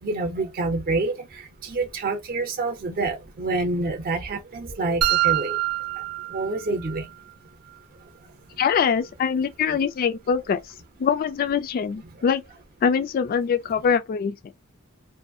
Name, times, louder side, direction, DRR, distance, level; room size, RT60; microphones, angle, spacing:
voice 1, 0.0-5.6 5.9-7.1 8.0-8.1, right 3 dB, 45° right, 0.6 m, -28 dB
sound 1, 5.0-7.0, right 14 dB, 90° right, 0.5 m, -25 dB
voice 2, 8.6-10.6 11.0-12.4 12.8-14.4, left 6 dB, 40° left, 0.3 m, -23 dB
2.6 x 2.3 x 2.6 m
head